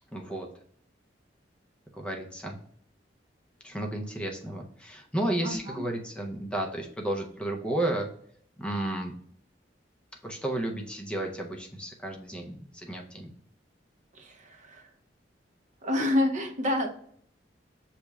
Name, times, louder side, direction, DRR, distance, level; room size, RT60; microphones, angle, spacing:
voice 1, 0.1-0.5 1.9-2.6 3.6-8.1 8.6-9.1 10.2-13.3, right 1 dB, 5° left, 1 dB, 0.5 m, -32 dB
voice 2, 5.4-5.8 14.1-14.9 15.8-16.9, left 1 dB, 45° right, 4 dB, 0.6 m, -28 dB
6.7 x 3.0 x 2.3 m, 0.62 s
head